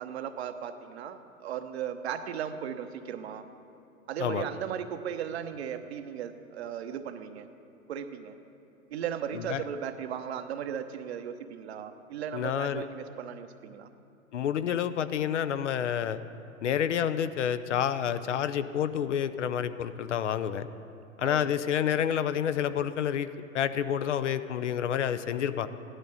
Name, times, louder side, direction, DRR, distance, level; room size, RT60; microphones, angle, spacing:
voice 1, 0.0-3.4 4.1-7.5 7.9-8.4 8.9-13.9 21.2-21.5, right 8 dB, 50° right, 9 dB, 0.9 m, -36 dB
voice 2, 12.3-12.9 14.3-16.2 16.6-20.7 21.2-23.3 23.5-25.7, left 9 dB, 55° left, 12 dB, 0.7 m, -29 dB
16.5 x 11.0 x 4.1 m, 2.6 s
figure-of-eight pair, 110°, 42 cm